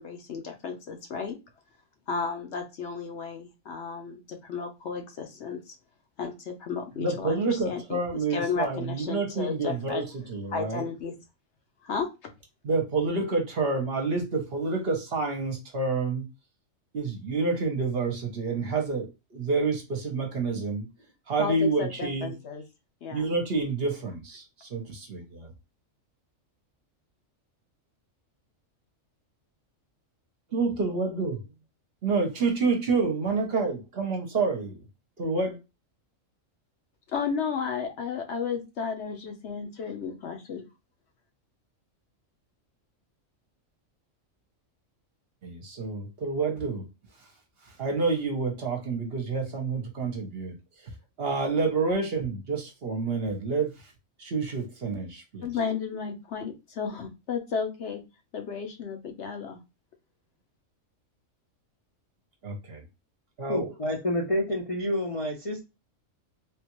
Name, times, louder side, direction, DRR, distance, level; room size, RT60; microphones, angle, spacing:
voice 1, 0.0-1.4 2.1-5.7 6.2-8.0 8.3-10.0 10.5-11.1 11.8-12.1 21.4-22.6 23.0-23.3 37.1-40.6 55.4-58.0 58.3-59.6, left 6 dB, 60° left, 1.0 m, -33 dB
voice 2, 7.0-10.8 12.6-16.3 16.9-20.9 21.3-22.3 23.1-25.5 30.5-31.4 32.0-34.8 35.2-35.6 45.4-46.9 47.8-50.5 51.2-53.7 54.2-55.5 62.4-62.8 63.4-63.7, right 4 dB, 55° right, 0.9 m, -28 dB
voice 3, 63.5-65.6, left 1 dB, 35° left, 0.5 m, -28 dB
3.5 x 2.4 x 2.9 m
omnidirectional pair, 1.4 m